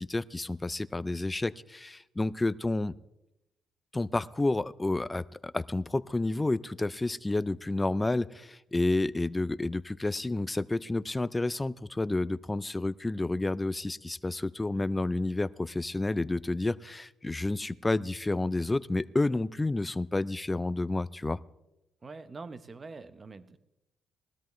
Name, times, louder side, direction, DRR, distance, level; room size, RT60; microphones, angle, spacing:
voice 1, 0.0-2.9 3.9-21.4, left 2 dB, 15° left, 17 dB, 0.4 m, -30 dB
voice 2, 22.0-23.6, right 3 dB, 35° right, 13 dB, 0.8 m, -44 dB
19.5 x 13.0 x 3.1 m, 0.93 s
cardioid pair, 90°, 0 cm